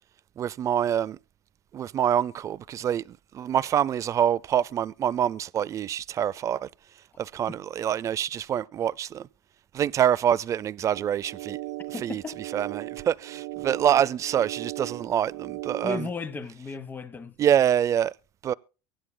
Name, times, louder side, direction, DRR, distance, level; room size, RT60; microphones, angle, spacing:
voice 1, 0.4-1.2 1.7-6.7 7.2-9.3 9.7-11.6 12.0-12.2 12.5-16.1 17.4-18.1 18.4-18.5, right 9 dB, 25° right, 0.5 m, -26 dB
sound 1, 10.9-16.0, right 17 dB, 80° right, 0.9 m, -37 dB
voice 2, 11.9-12.4 15.8-17.3, left 4 dB, 15° left, 1.3 m, -35 dB
23.5 x 9.9 x 2.3 m
supercardioid pair, 145°, 12 cm